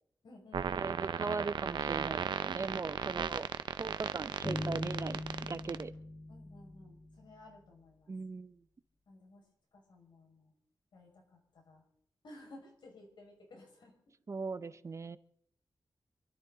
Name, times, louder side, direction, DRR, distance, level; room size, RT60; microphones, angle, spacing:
voice 1, 0.2-1.0 6.3-8.1 9.1-10.5 10.9-11.8 12.2-14.0, left 2 dB, 85° left, 0 dB, 5.6 m, -56 dB
sound 1, 0.5-5.8, right 7 dB, 90° right, 0.7 m, -35 dB
voice 2, 0.8-3.5 3.8-5.2 5.5-5.9 8.1-8.6 14.3-15.2, right 4 dB, 40° right, 14 dB, 0.6 m, -39 dB
sound 2, 4.4-7.5, left 1 dB, 30° left, 5.9 m, -41 dB
27.0 x 12.5 x 3.9 m, 0.66 s
wide cardioid pair, 125°, 8 cm